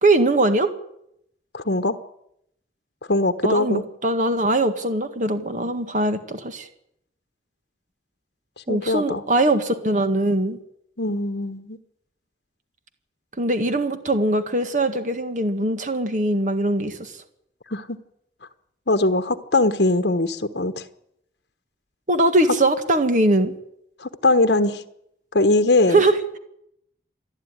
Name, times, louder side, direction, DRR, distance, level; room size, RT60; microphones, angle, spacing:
voice 1, 0.0-0.7 3.4-6.7 8.7-10.6 13.4-17.1 22.1-23.5 25.9-26.4, right 2 dB, 45° right, 8 dB, 1.8 m, -21 dB
voice 2, 1.5-2.0 3.1-3.8 8.7-9.2 11.0-11.8 17.7-18.0 18.9-20.8 24.0-24.8 25.3-26.0, left 2 dB, 70° left, 9 dB, 1.2 m, -21 dB
28.0 x 11.0 x 9.7 m, 0.77 s
head